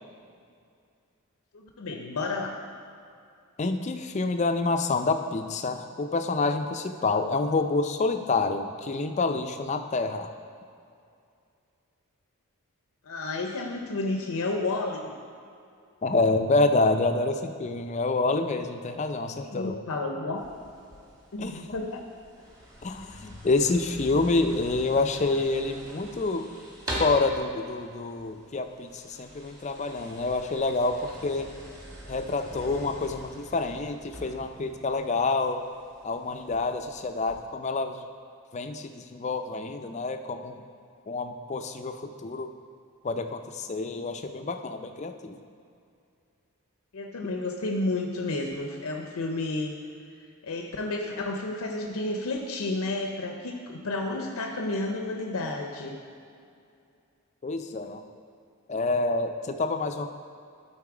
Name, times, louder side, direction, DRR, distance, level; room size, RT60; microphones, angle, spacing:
voice 1, 1.5-2.6 13.0-15.1 19.3-20.4 21.3-22.0 46.9-49.7 50.4-56.0, left 2 dB, 75° left, 2 dB, 0.6 m, -31 dB
voice 2, 3.6-10.3 16.0-19.8 21.4-21.6 22.8-26.5 26.9-31.5 32.1-35.6 36.0-38.0 38.5-40.6 41.1-42.5 43.0-45.4 57.4-58.0 58.7-60.1, left 3 dB, 30° left, 7 dB, 0.4 m, -27 dB
sound 1, 20.4-37.4, equal, 15° right, 1.3 m, -43 dB
12.0 x 4.1 x 4.8 m, 2.4 s
head